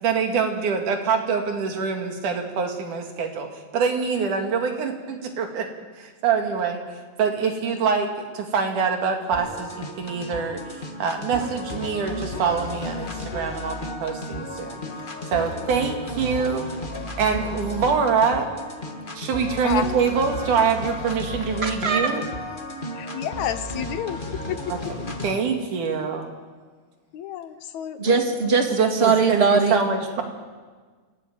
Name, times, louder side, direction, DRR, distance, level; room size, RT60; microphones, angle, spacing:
voice 1, 0.0-3.5 3.7-5.7 6.0-6.8 7.2-10.6 11.0-14.8 15.3-16.7 17.2-18.5 19.2-22.2 24.7-24.8 25.2-26.3 28.8-30.2, right 6 dB, 85° right, 4 dB, 3.7 m, -24 dB
sound 1, 9.3-25.3, left 1 dB, 25° left, 1.2 m, -34 dB
voice 2, 21.6-22.1 28.0-29.8, right 5 dB, 25° right, 4 dB, 1.6 m, -20 dB
voice 3, 23.0-25.1 27.1-28.2, left 10 dB, 75° left, 11 dB, 2.3 m, -31 dB
27.0 x 14.0 x 9.2 m, 1.5 s
omnidirectional pair, 3.4 m